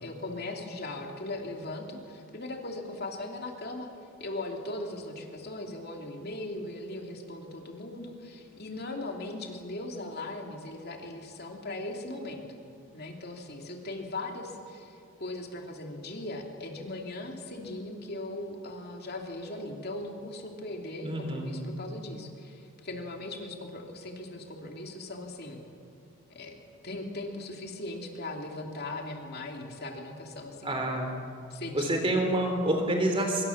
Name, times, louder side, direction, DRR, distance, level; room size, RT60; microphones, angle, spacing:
voice 1, 0.0-3.9 4.2-12.4 12.9-25.6 26.3-26.5 26.8-30.8 31.5-32.1, left 2 dB, 45° left, 2 dB, 2.7 m, -39 dB
voice 2, 21.0-21.6 30.6-31.2 31.7-33.4, right 1 dB, 25° right, 3 dB, 3.3 m, -28 dB
25.0 x 23.5 x 7.1 m, 2.6 s
head